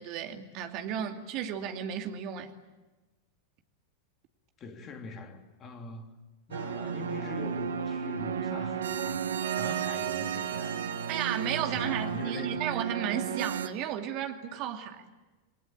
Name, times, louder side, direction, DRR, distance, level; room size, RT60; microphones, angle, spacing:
voice 1, 0.0-2.5 11.1-15.0, right 9 dB, 40° right, 2.6 m, -34 dB
voice 2, 4.6-6.1 6.5-9.2 9.6-10.8 11.6-12.6, left 4 dB, 30° left, 3.0 m, -43 dB
sound 1, 6.5-13.7, right 7 dB, 65° right, 1.4 m, -33 dB
28.5 x 22.5 x 9.1 m
figure-of-eight pair, 90°, 0 cm